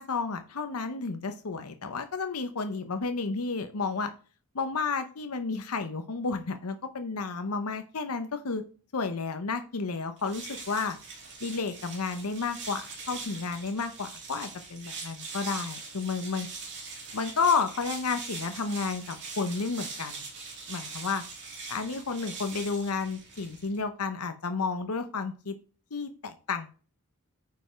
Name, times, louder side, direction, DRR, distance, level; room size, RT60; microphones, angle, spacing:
voice 1, 0.0-4.1 4.5-8.6 8.9-11.0 11.4-16.5 17.1-20.2 20.7-21.2 21.7-25.5 25.9-26.7, left 4 dB, 90° left, 7 dB, 0.8 m, -31 dB
sound 1, 10.2-23.8, right 4 dB, 55° right, 3.1 m, -42 dB
9.1 x 5.3 x 4.4 m, 0.38 s
head